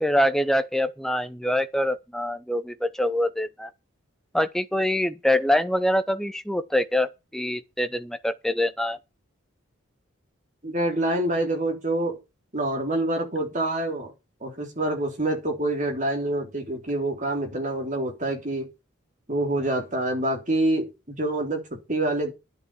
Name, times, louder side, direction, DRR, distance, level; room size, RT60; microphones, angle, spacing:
voice 1, 0.0-3.7 4.3-9.0, left 1 dB, ahead, 0.7 m, -25 dB
voice 2, 10.6-12.2 12.5-14.1 14.4-18.7 19.3-22.3, right 1 dB, 35° right, 3.5 m, -26 dB
11.0 x 8.1 x 6.9 m
head